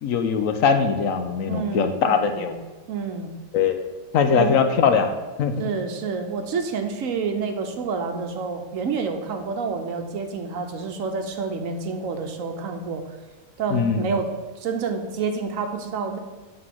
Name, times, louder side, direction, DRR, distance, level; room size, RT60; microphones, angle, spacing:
voice 1, 0.0-2.6 3.5-3.8 4.1-5.7 13.7-14.1, left 6 dB, 70° left, 7 dB, 1.0 m, -21 dB
voice 2, 1.5-2.5 2.9-3.3 4.3-4.6 5.6-13.0 13.6-16.2, right 5 dB, 70° right, 5 dB, 1.1 m, -28 dB
7.9 x 3.8 x 5.9 m, 1.2 s
omnidirectional pair, 1.5 m